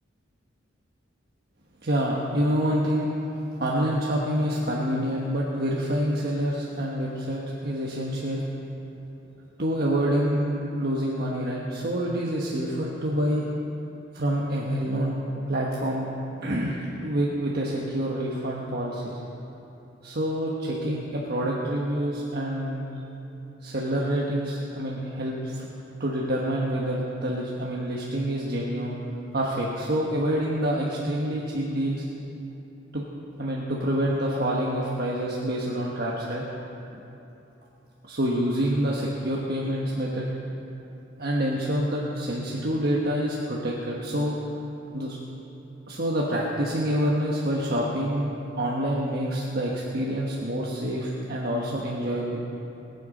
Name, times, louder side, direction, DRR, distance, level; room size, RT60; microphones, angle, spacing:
voice 1, 1.8-3.1 3.6-8.4 9.6-13.4 14.1-15.2 15.5-16.1 16.4-19.0 20.0-22.8 23.6-25.7 26.0-29.0 29.3-32.0 32.9-33.0 33.4-36.4 36.9-37.0 38.0-40.2 41.2-44.3 44.9-45.2 45.9-52.4, equal, 55° right, -4 dB, 1.3 m, -27 dB
21.0 x 8.3 x 5.0 m, 2.9 s
head